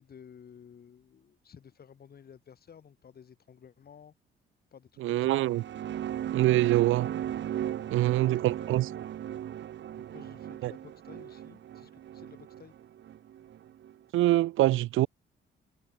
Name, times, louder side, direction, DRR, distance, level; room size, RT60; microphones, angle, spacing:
voice 1, 0.0-4.1 4.7-5.4 7.8-8.8 9.9-12.7, left 7 dB, 50° left, 4.1 m, -53 dB
voice 2, 5.0-5.6 6.3-7.1 7.9-8.9 10.6-10.7 14.1-15.1, right 16 dB, 85° right, 0.9 m, -24 dB
sound 1, 5.3-13.9, right 11 dB, 65° right, 1.9 m, -37 dB
cardioid pair, 90°, 20 cm